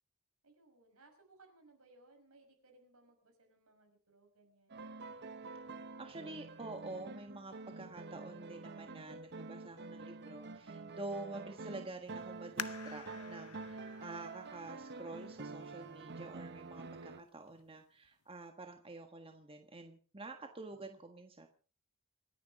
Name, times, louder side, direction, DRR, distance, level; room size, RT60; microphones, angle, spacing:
voice 1, 0.4-4.8, right 2 dB, 75° right, 4 dB, 6.2 m, -65 dB
sound 1, 4.7-17.2, right 3 dB, 50° right, 1.1 m, -47 dB
voice 2, 6.0-21.5, right 2 dB, 25° right, 5 dB, 1.5 m, -48 dB
sound 2, 12.6-15.9 16.5-16.6 17.3-17.7 18.0-18.1, left 10 dB, 85° left, 0.7 m, -48 dB
26.5 x 10.0 x 5.0 m, 0.39 s
head